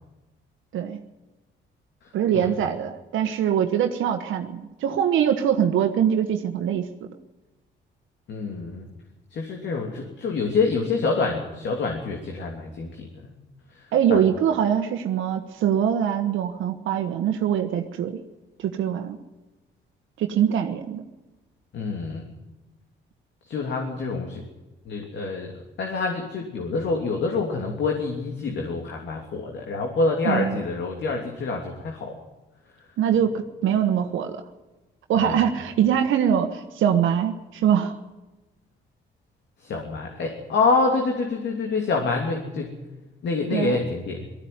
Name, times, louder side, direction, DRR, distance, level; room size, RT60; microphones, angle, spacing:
voice 1, 2.1-6.9 13.9-18.2 18.6-19.2 20.2-21.0 30.2-30.6 33.0-34.4 35.1-38.0 43.5-43.8, right 9 dB, 80° right, 5 dB, 1.3 m, -23 dB
voice 2, 8.3-8.9 9.3-13.3 14.1-14.2 21.7-22.3 23.5-24.4 24.8-25.5 25.8-32.1 35.1-35.4 39.6-42.7 43.2-44.3, left 3 dB, 65° left, 2 dB, 3.0 m, -26 dB
18.5 x 15.0 x 9.6 m, 1.1 s
cardioid pair, 90°, 20 cm